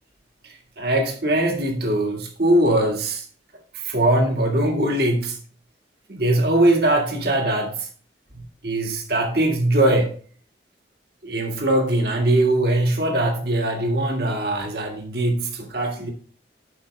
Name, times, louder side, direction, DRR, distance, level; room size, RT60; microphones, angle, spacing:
voice 1, 0.4-3.2 3.7-5.4 6.1-7.9 8.3-10.2 11.2-16.1, right 1 dB, 60° right, 1.7 m, -21 dB
11.5 x 5.0 x 3.3 m
head